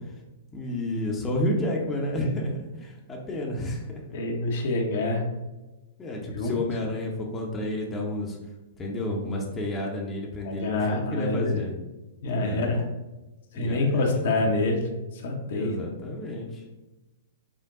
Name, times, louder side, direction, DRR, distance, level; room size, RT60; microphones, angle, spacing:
voice 1, 0.5-4.0 6.0-8.4 8.8-11.7 12.2-12.8 13.5-14.5 15.5-16.6, left 1 dB, 15° left, -1 dB, 0.7 m, -31 dB
voice 2, 4.1-5.2 6.3-6.6 10.4-11.6 12.2-12.8 13.5-14.8 15.1-15.8, left 2 dB, 55° left, 1 dB, 0.8 m, -26 dB
6.2 x 2.2 x 3.6 m, 1.1 s
figure-of-eight pair, 105°, 0 cm